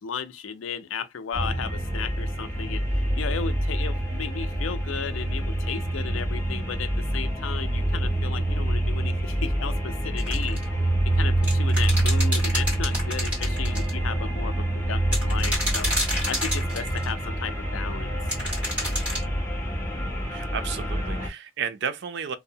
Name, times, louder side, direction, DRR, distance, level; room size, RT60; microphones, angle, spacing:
voice 1, 0.0-2.8 3.1-10.6 11.1-15.9 16.2-18.1, left 7 dB, 80° left, 0.4 m, -34 dB
sound 1, 1.3-21.3, right 1 dB, 10° left, 0.8 m, -26 dB
sound 2, 10.2-10.6 11.4-13.9 15.1-17.1 18.3-19.2, equal, 10° right, 1.5 m, -29 dB
voice 2, 20.3-22.4, right 7 dB, 60° right, 0.4 m, -32 dB
2.6 x 2.0 x 2.7 m
head